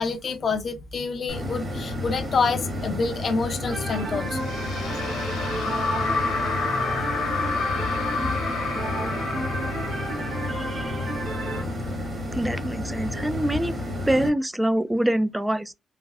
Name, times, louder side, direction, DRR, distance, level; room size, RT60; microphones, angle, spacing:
voice 1, 0.0-4.5, left 4 dB, 45° left, 0.5 m, -27 dB
sound 1, 1.3-14.3, left 1 dB, 30° right, 1.4 m, -31 dB
sound 2, 3.7-11.6, right 2 dB, 70° right, 0.9 m, -33 dB
sound 3, 4.3-11.6, left 5 dB, 75° left, 1.0 m, -30 dB
voice 2, 10.5-10.9 12.3-13.8 14.1-15.7, right 1 dB, 10° right, 0.3 m, -25 dB
3.3 x 2.5 x 2.2 m
cardioid pair, 90°, 0 cm